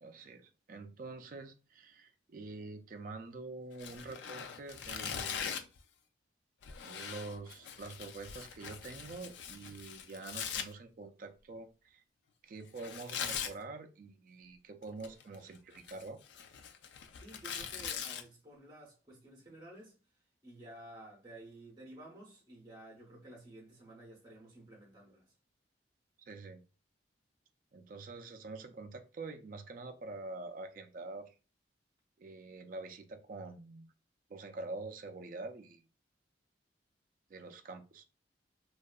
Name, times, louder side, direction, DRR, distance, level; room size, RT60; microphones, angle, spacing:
voice 1, 0.0-5.6 6.8-12.0 12.4-16.2 26.3-26.6 27.7-31.3 32.2-33.9 34.3-35.8 37.3-38.0, right 3 dB, 45° right, 0.3 m, -46 dB
Tearing, 3.8-5.8 6.6-10.7 12.8-13.5 14.8-15.4 15.7-18.2, left 7 dB, 75° left, 0.3 m, -41 dB
voice 2, 17.2-19.9 20.4-25.3, right 1 dB, 20° right, 0.7 m, -53 dB
2.7 x 2.3 x 2.2 m
head